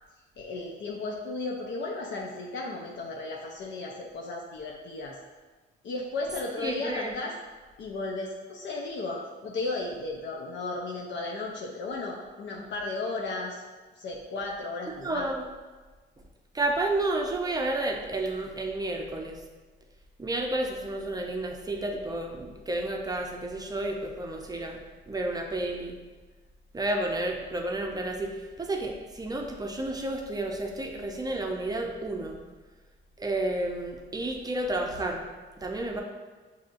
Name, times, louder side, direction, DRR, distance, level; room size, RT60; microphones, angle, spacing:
voice 1, 0.4-5.2 5.8-7.3 7.8-13.6 14.0-15.3, left 3 dB, 65° left, -2 dB, 0.6 m, -34 dB
voice 2, 6.6-7.1 15.0-15.4 16.5-19.4 20.2-24.8 25.1-26.0 26.7-32.4 33.2-35.2 35.6-36.0, right 2 dB, 20° right, 2 dB, 0.6 m, -31 dB
5.9 x 2.7 x 2.5 m, 1.3 s
cardioid pair, 90°, 20 cm